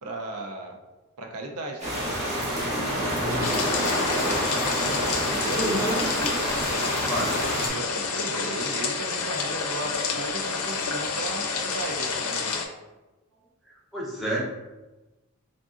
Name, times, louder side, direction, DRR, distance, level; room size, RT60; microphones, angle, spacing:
voice 1, 0.0-0.8 1.2-2.2 2.6-3.7 4.1-4.5 5.3-6.1 7.7-12.6, right 2 dB, 85° right, 3 dB, 0.5 m, -36 dB
sound 1, 1.8-7.7, equal, 30° right, 1.1 m, -28 dB
voice 2, 3.1-3.4 5.5-6.3 7.1-7.7 13.7-14.4, equal, ahead, -7 dB, 0.8 m, -30 dB
sound 2, 3.4-12.6, left 5 dB, 80° left, 0.5 m, -29 dB
3.7 x 3.6 x 2.5 m, 1.1 s
head